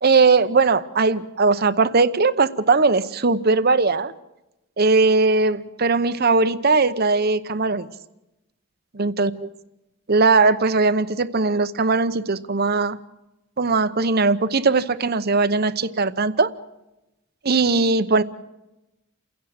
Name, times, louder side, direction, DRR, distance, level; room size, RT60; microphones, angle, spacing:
voice 1, 0.0-4.1 4.8-7.9 8.9-9.5 10.1-13.0 13.6-16.5 17.4-18.2, right 3 dB, 50° right, 13 dB, 0.9 m, -19 dB
29.5 x 16.5 x 6.5 m, 0.96 s
head